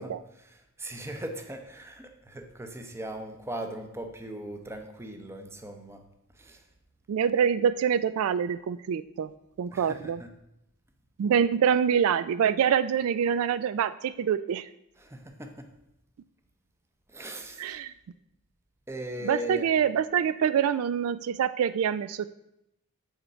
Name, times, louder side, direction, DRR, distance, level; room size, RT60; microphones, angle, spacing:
voice 1, 0.0-6.0 6.4-6.6 9.7-10.3 15.0-15.7 17.1-17.8 18.9-19.7, equal, 10° right, 5 dB, 0.7 m, -39 dB
voice 2, 7.1-9.3 9.6-10.2 11.2-14.7 17.6-17.9 19.2-22.3, right 8 dB, 70° right, 14 dB, 0.3 m, -25 dB
6.5 x 4.5 x 6.6 m, 0.83 s
head